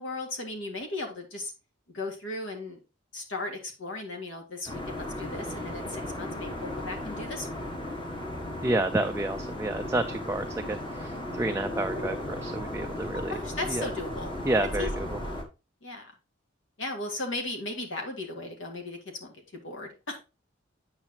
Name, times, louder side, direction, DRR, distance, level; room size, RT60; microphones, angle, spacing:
voice 1, 0.0-1.5 1.9-2.8 3.1-7.5 13.1-14.3 14.8-14.9 15.8-16.1 16.8-20.2, left 2 dB, 70° left, 3 dB, 2.0 m, -36 dB
sound 1, 4.7-15.4, left 1 dB, 25° left, 1.4 m, -35 dB
voice 2, 8.6-13.4 13.7-13.8 14.4-15.2, right 2 dB, 15° right, 5 dB, 0.3 m, -30 dB
8.8 x 5.7 x 2.9 m, 0.29 s
head